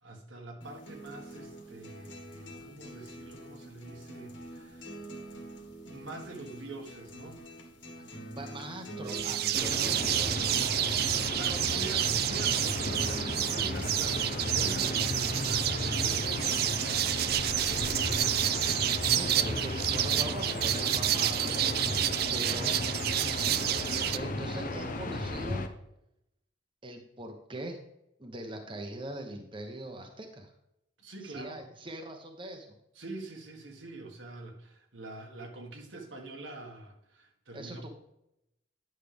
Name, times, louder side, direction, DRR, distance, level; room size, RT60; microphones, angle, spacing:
voice 1, 0.0-5.0 5.8-7.4 11.4-16.8 17.2-18.2 31.0-31.6 32.9-37.9, right 2 dB, 85° right, 2 dB, 1.6 m, -45 dB
sound 1, 0.6-16.6, right 1 dB, 85° left, 1.8 m, -45 dB
voice 2, 8.3-11.0 11.4-11.8 13.8-14.2 19.1-22.7 23.9-25.6 26.8-27.8 28.2-30.5 31.2-32.8 37.5-37.9, right 1 dB, 25° right, 3 dB, 0.9 m, -42 dB
sound 2, 9.1-24.2, right 12 dB, 55° right, 0.4 m, -29 dB
sound 3, 9.5-25.7, left 2 dB, 45° left, 0.7 m, -35 dB
9.8 x 6.5 x 3.5 m, 0.83 s
head